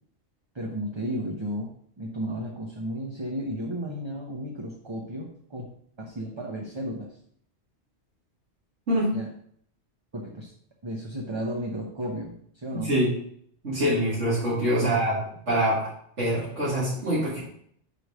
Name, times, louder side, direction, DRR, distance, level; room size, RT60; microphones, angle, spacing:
voice 1, 0.5-5.7 6.0-7.2 9.1-9.3 10.1-10.5 10.8-12.9 14.6-15.0, equal, 25° right, -1 dB, 0.8 m, -33 dB
voice 2, 8.9-9.2 12.7-13.1 13.6-15.2 15.5-15.8 16.2-17.4, equal, 85° right, -10 dB, 2.6 m, -24 dB
4.9 x 4.8 x 6.2 m, 0.65 s
omnidirectional pair, 1.2 m